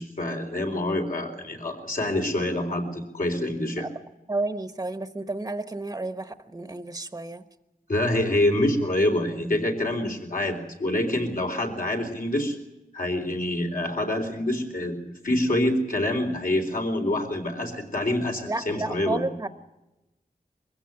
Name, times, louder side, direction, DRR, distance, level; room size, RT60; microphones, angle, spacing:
voice 1, 0.0-3.9 7.9-12.6 12.9-15.0 15.2-19.2, left 1 dB, 60° left, 3 dB, 4.0 m, -26 dB
voice 2, 4.3-7.4 18.5-19.5, right 2 dB, 20° right, 10 dB, 1.1 m, -31 dB
23.5 x 16.0 x 9.7 m, 0.98 s
wide cardioid pair, 95°, 16 cm